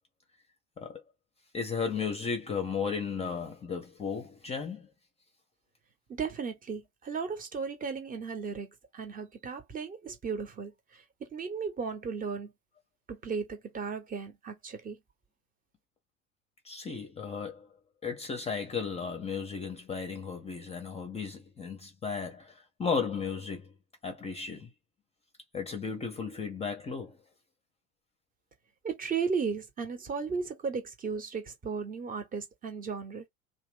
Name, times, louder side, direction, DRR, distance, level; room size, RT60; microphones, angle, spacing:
voice 1, 1.5-4.9 16.6-17.7 18.0-23.7 24.0-24.7 25.5-27.2, left 5 dB, 15° left, 0.6 m, -35 dB
voice 2, 6.1-8.7 8.9-12.5 13.1-15.0 28.8-33.3, right 5 dB, 20° right, 0.8 m, -35 dB
2.8 x 2.1 x 3.3 m
figure-of-eight pair, 80°, 40 cm